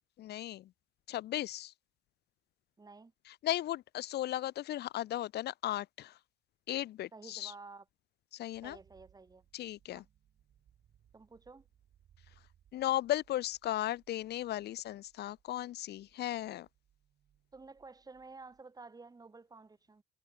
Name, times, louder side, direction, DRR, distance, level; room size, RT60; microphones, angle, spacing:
voice 1, 0.2-0.7 1.1-1.7 3.3-6.2 6.7-7.5 8.3-8.8 9.5-10.0 12.7-16.7, left 13 dB, 55° left, 0.8 m, -36 dB
voice 2, 2.8-3.1 7.1-7.8 8.6-9.4 9.9-10.0 11.1-11.7 17.5-20.0, right 3 dB, 20° right, 2.3 m, -52 dB
sound 1, 8.5-18.6, right 10 dB, 55° right, 7.7 m, -69 dB
cardioid pair, 95°, 20 cm